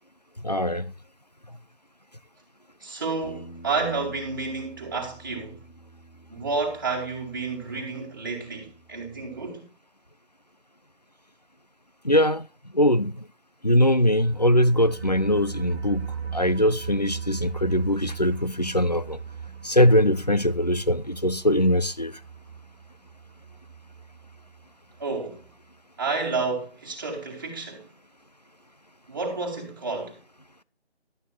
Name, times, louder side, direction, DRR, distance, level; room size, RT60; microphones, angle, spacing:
voice 1, 0.4-0.9 12.0-12.5 12.7-13.2 13.6-16.1 16.3-19.2 19.6-22.2, left 1 dB, 40° left, 0.5 m, -21 dB
voice 2, 2.8-5.6 6.3-9.7 25.0-25.5 26.0-27.9 29.1-30.2, right 4 dB, 20° right, 2.2 m, -30 dB
Bass guitar, 3.2-9.5, right 1 dB, 85° left, 3.4 m, -50 dB
sound 1, 14.0-24.7 25.0-25.1 25.4-25.5, right 6 dB, 70° right, 1.1 m, -38 dB
12.0 x 8.7 x 3.2 m
figure-of-eight pair, 170°, 33 cm